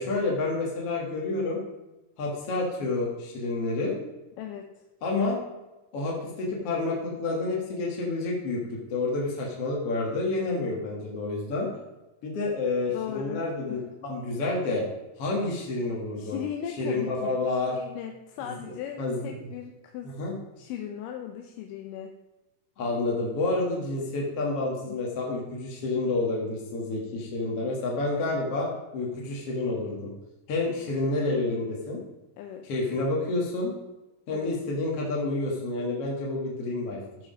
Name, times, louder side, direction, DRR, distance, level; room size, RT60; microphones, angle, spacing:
voice 1, 0.0-1.6 2.2-3.9 5.0-5.4 5.9-8.6 8.9-11.7 12.2-14.8 15.2-16.4 16.8-17.7 18.4-19.3 20.0-20.3 22.8-30.1 30.5-32.0 32.6-33.7 34.3-37.0, left 2 dB, 50° left, -3 dB, 2.2 m, -29 dB
voice 2, 4.4-4.8 12.9-13.8 16.2-20.2 20.6-22.1 24.9-25.0 32.4-32.7 34.3-34.5, left 9 dB, 80° left, 4 dB, 2.2 m, -38 dB
13.5 x 4.8 x 5.0 m, 1.0 s
omnidirectional pair, 4.1 m